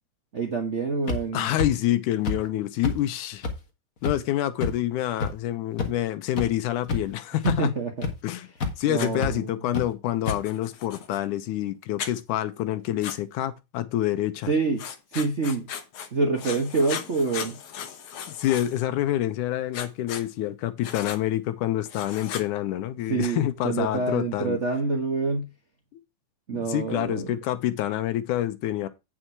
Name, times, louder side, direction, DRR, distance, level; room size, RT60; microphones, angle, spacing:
voice 1, 0.3-1.5 7.4-8.1 8.9-9.6 14.5-14.9 15.1-15.7 16.1-17.6 23.1-25.5 26.5-27.3, right 4 dB, 55° right, 0.7 m, -26 dB
sound 1, 1.1-1.2 1.6-1.7 2.2-2.4 2.8-2.9 3.4-3.5 4.0-4.1 4.6-4.7 5.2-5.3 5.8-5.9 6.4-6.5 6.9-7.1 7.4-7.5 8.0-8.1 8.6-8.7 9.2-9.3 9.7-9.8 10.3-10.4, left 4 dB, 40° left, 1.3 m, -27 dB
voice 2, 1.3-3.4 4.0-7.7 8.2-8.5 8.8-14.5 18.3-24.6 25.9-26.0 26.5-28.9, left 13 dB, 85° left, 2.3 m, -27 dB
Writing, 9.0-9.1 10.2-11.2 12.0-12.1 13.0-13.2 14.8-16.1 16.4-18.8 19.7-20.2 20.8-21.2 21.9-22.5, left 8 dB, 65° left, 1.7 m, -36 dB
8.9 x 6.1 x 4.6 m
omnidirectional pair, 3.5 m